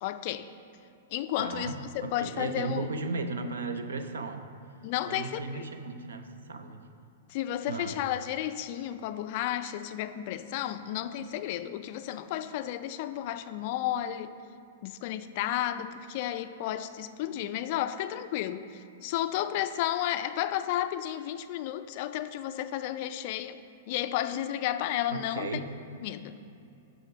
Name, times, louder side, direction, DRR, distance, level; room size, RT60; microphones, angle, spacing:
voice 1, 0.0-0.5 1.1-2.9 4.8-5.6 7.3-14.3 14.8-23.6 23.9-25.6 26.0-26.3, left 12 dB, 45° left, 11 dB, 0.3 m, -32 dB
voice 2, 1.4-4.5 5.1-6.9 7.7-8.0 25.1-25.7, right 3 dB, 70° right, 8 dB, 0.6 m, -36 dB
6.5 x 6.1 x 4.9 m, 2.7 s
figure-of-eight pair, 105°, 0 cm